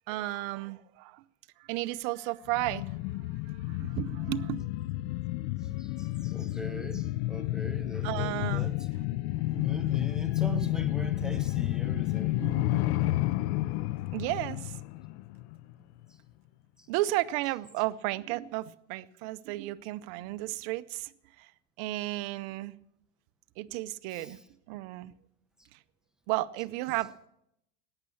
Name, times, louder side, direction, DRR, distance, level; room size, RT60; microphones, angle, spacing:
voice 1, 0.1-1.2 1.6-3.0 3.5-4.6 8.0-8.7 9.3-9.6 12.3-13.2 14.1-14.8 16.9-21.5 21.8-22.7 23.6-24.4 24.7-25.1 25.7-25.8 26.3-27.1, right 17 dB, 50° right, 0.6 m, -34 dB
sound 1, 2.5-15.7 16.0-16.1, left 17 dB, 60° left, 0.5 m, -31 dB
voice 2, 5.8-8.7 9.5-12.4 24.1-24.3, right 1 dB, ahead, 0.7 m, -40 dB
14.5 x 9.6 x 7.0 m
supercardioid pair, 150°, 37 cm